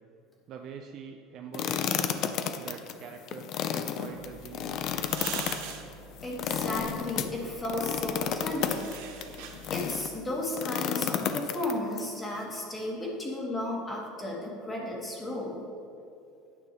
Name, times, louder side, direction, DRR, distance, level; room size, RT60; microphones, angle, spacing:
voice 1, 0.5-1.9 2.6-4.9, right 7 dB, 50° right, 4 dB, 0.4 m, -44 dB
sound 1, 1.5-10.1 10.5-12.0, left 8 dB, 50° left, 0.4 m, -32 dB
sound 2, 4.1-10.3, right 6 dB, 75° right, 0.7 m, -44 dB
voice 2, 6.2-8.9 9.7-15.6, left 1 dB, 15° left, -2 dB, 1.3 m, -34 dB
9.3 x 6.1 x 2.9 m, 2.6 s
supercardioid pair, 130°, 0 cm